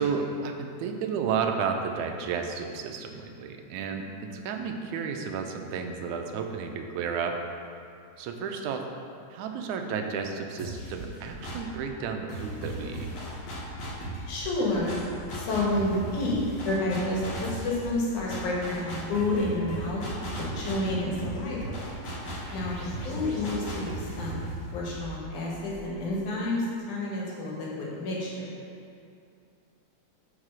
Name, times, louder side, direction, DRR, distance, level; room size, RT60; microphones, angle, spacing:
voice 1, 0.0-7.4 8.2-8.8 9.3-13.1, right 6 dB, 85° right, 4 dB, 2.0 m, -32 dB
sound 1, 10.6-11.8 12.3-26.0, right 1 dB, 60° left, 2.6 m, -37 dB
voice 2, 14.3-15.0 15.3-16.4 16.6-20.0 20.4-21.8 22.5-24.5 24.7-28.6, left 2 dB, 80° left, -4 dB, 3.0 m, -30 dB
6.5 x 5.5 x 6.1 m, 2.4 s
omnidirectional pair, 3.5 m